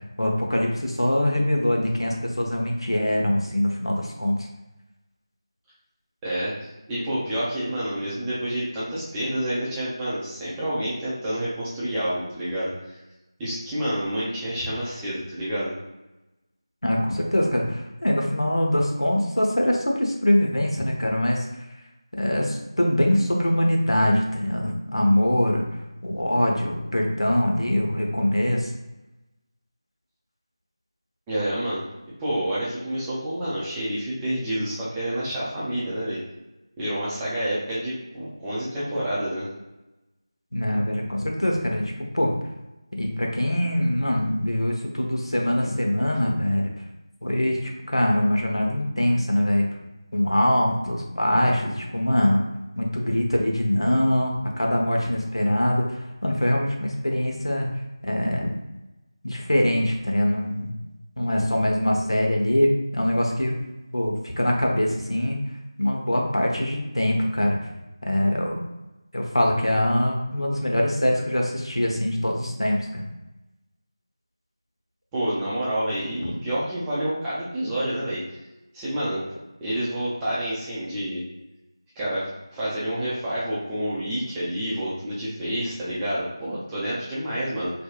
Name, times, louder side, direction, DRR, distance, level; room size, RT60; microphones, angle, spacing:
voice 1, 0.2-4.5 16.8-21.4 22.2-25.6 26.0-28.7 40.5-42.3 43.0-46.7 47.2-47.6 47.9-49.7 50.1-52.4 52.8-57.7 58.0-58.5 59.2-60.7 61.2-63.6 63.9-65.4 65.8-67.6 68.0-68.6 69.1-73.0 76.2-76.3, left 1 dB, 90° left, 0 dB, 1.0 m, -23 dB
voice 2, 6.2-12.7 13.4-15.7 31.3-31.8 32.2-36.2 36.8-39.5 75.1-78.2 78.7-79.2 79.6-81.2 82.0-87.7, right 1 dB, 5° right, -10 dB, 0.4 m, -28 dB
4.4 x 2.6 x 2.4 m, 1.0 s
figure-of-eight pair, 170°, 3 cm